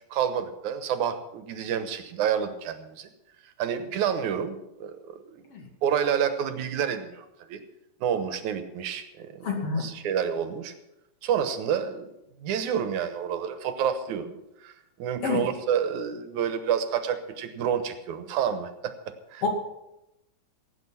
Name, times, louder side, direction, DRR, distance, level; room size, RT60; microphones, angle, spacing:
voice 1, 0.1-3.1 3.6-5.4 5.8-7.6 8.0-9.5 9.8-10.7 11.2-12.1 12.4-14.7 15.0-18.9 19.3-19.4, right 8 dB, 80° right, 9 dB, 2.6 m, -29 dB
voice 2, 9.4-9.9 15.2-15.4 19.4-19.5, left 5 dB, 50° left, 1 dB, 3.1 m, -27 dB
17.5 x 9.1 x 5.8 m, 0.89 s
omnidirectional pair, 3.4 m